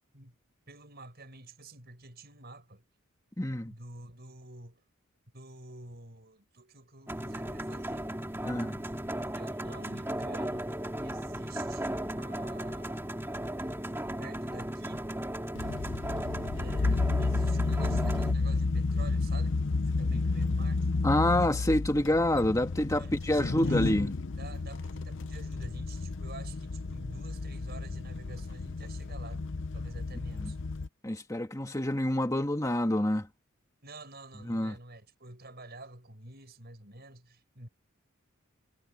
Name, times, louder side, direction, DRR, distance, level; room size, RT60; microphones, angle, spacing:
voice 1, 0.7-2.8 3.7-4.8 5.3-8.1 9.3-13.8 14.2-15.1 16.6-20.9 23.0-24.0 24.4-29.4 29.7-30.6 33.8-37.7, right 2 dB, 45° right, 6.8 m, -49 dB
voice 2, 3.4-3.7 8.4-8.8 21.0-24.1 30.4-30.5 31.0-33.3 34.5-34.7, left 1 dB, 15° left, 1.7 m, -27 dB
sound 1, 7.1-18.3, right 1 dB, 10° right, 2.1 m, -36 dB
sound 2, 15.6-30.9, left 3 dB, 60° left, 0.7 m, -31 dB
head